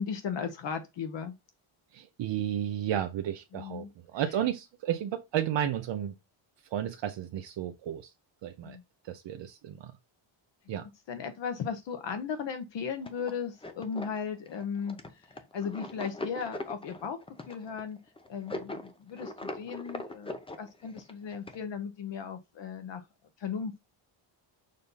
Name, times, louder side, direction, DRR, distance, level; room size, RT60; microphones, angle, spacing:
voice 1, 0.0-1.3 3.5-3.9 8.6-8.8 11.1-15.2 15.5-17.2 17.5-18.0 18.3-23.0 23.4-23.7, left 6 dB, 60° left, 1.1 m, -36 dB
voice 2, 1.9-6.1 6.7-8.1 8.4-8.8 9.0-9.9 10.7-10.9, right 10 dB, 60° right, 0.8 m, -33 dB
sound 1, 13.0-21.6, left 2 dB, 10° left, 0.7 m, -41 dB
6.7 x 2.7 x 5.4 m
cardioid pair, 145°, 50 cm